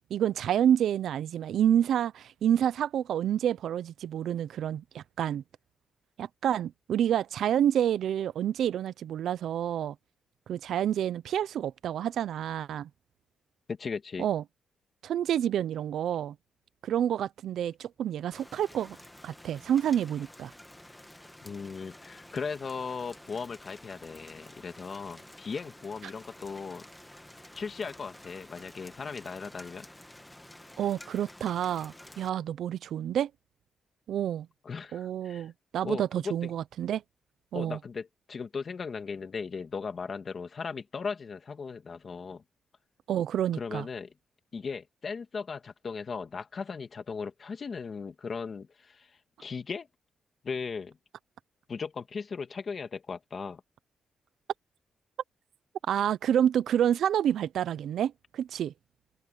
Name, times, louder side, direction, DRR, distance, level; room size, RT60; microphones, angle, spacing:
voice 1, 0.1-5.4 6.2-9.9 10.5-12.9 14.2-14.4 15.0-16.3 16.8-19.0 19.2-20.5 30.8-33.3 34.1-34.5 34.9-37.0 37.5-37.8 43.1-43.9 55.9-58.7, right 10 dB, 75° right, 0.6 m, -28 dB
voice 2, 13.7-14.3 21.4-26.9 27.5-29.9 34.6-35.5 35.8-36.0 37.5-42.4 43.6-44.1 44.5-49.1 49.4-49.9 50.4-51.0 51.7-53.6, left 5 dB, 35° left, 2.0 m, -37 dB
Rain, 18.3-32.3, left 1 dB, 5° left, 1.3 m, -51 dB
open air
wide cardioid pair, 155°, 0 cm